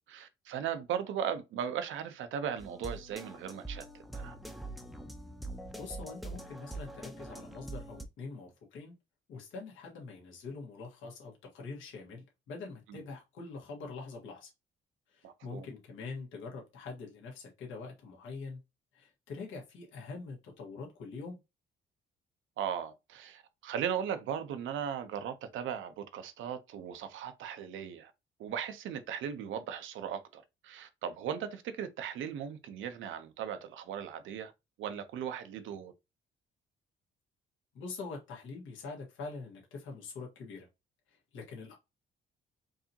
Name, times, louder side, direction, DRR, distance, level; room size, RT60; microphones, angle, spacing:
voice 1, 0.0-3.9 4.1-4.4 12.9-13.0 15.2-15.7 22.6-28.1 28.4-34.5 34.8-35.9, right 8 dB, 80° right, 0.7 m, -37 dB
sound 1, 2.6-8.0, right 2 dB, ahead, 0.6 m, -44 dB
voice 2, 5.8-8.9 9.3-14.5 15.1-18.6 18.9-21.4 37.7-40.7 41.1-41.7, left 4 dB, 80° left, 1.5 m, -44 dB
4.7 x 2.8 x 2.8 m
cardioid pair, 90°, 20 cm